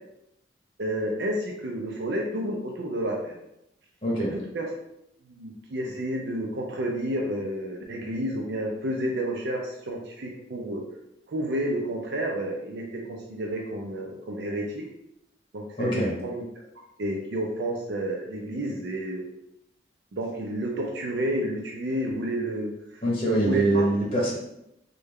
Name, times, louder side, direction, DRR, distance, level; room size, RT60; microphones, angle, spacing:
voice 1, 0.8-3.4 4.2-4.3 4.5-4.7 5.3-10.8 11.3-14.9 15.5-16.4 17.0-19.2 20.1-23.0 23.3-23.8, right 1 dB, 65° right, 0 dB, 0.4 m, -30 dB
voice 2, 15.8-16.1 23.0-24.3, right 1 dB, 30° left, -4 dB, 0.9 m, -23 dB
3.2 x 2.2 x 3.5 m, 0.82 s
head